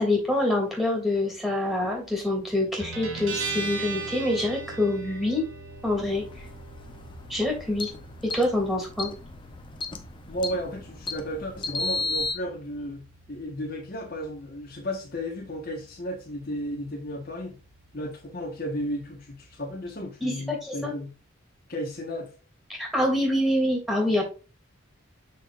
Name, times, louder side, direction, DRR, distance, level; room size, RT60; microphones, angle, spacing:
voice 1, 0.0-5.4 5.8-6.2 7.3-7.9 8.3-9.1 20.2-20.9 22.8-24.2, left 1 dB, ahead, -1 dB, 2.9 m, -26 dB
Guitar, 2.8-20.0, right 4 dB, 70° right, 2.5 m, -41 dB
sound 1, 5.8-12.3, left 3 dB, 25° left, 0.7 m, -35 dB
voice 2, 10.3-17.5 17.9-21.1 21.7-22.3, equal, 45° left, 1 dB, 1.5 m, -34 dB
6.9 x 6.2 x 2.6 m, 0.33 s
head